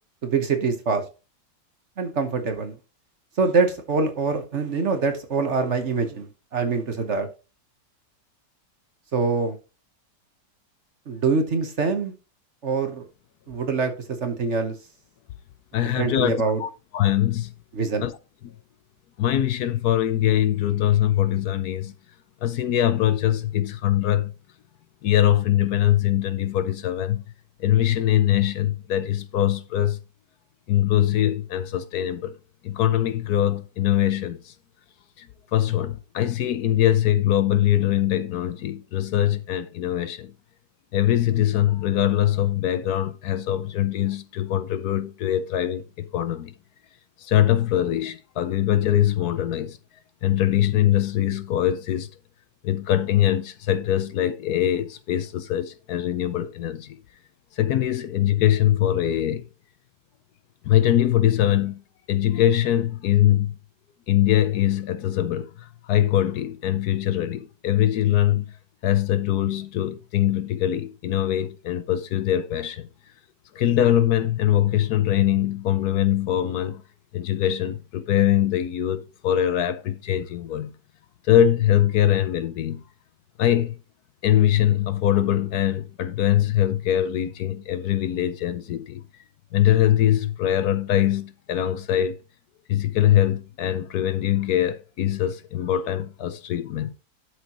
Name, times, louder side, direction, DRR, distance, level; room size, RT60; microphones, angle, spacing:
voice 1, 0.2-1.0 2.0-2.7 3.4-7.3 9.1-9.6 11.1-12.1 12.6-13.1 13.5-13.9 14.2-14.8 16.0-16.6 17.7-18.1, right 4 dB, 45° right, 1.2 m, -24 dB
voice 2, 15.7-17.5 18.0-18.1 19.2-21.9 22.4-24.3 25.0-27.2 27.6-30.0 30.7-32.3 32.6-34.5 35.2-35.3 35.5-40.3 40.9-46.5 47.2-49.8 50.2-52.1 52.6-57.0 57.6-59.4 60.6-61.8 62.1-63.5 64.1-65.5 65.9-68.5 68.8-72.9 73.5-76.8 77.1-80.7 81.3-82.8 83.4-83.7 84.2-89.0 89.5-92.2 92.7-96.9, left 12 dB, 70° left, 1.1 m, -22 dB
11.5 x 6.3 x 3.0 m
omnidirectional pair, 1.8 m